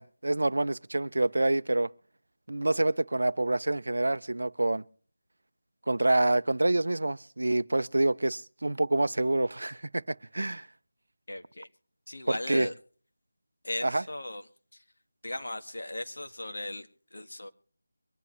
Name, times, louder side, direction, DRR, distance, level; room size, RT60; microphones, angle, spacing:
voice 1, 0.0-1.9 2.5-4.8 5.9-10.7 12.3-12.7 13.8-14.0, right 2 dB, 80° right, 0.5 m, -27 dB
voice 2, 11.3-11.7 12.1-12.7 13.6-14.4 14.7-14.8 15.2-17.5, left 1 dB, 75° left, 1.7 m, -37 dB
23.5 x 11.0 x 3.1 m
figure-of-eight pair, 175°, 0 cm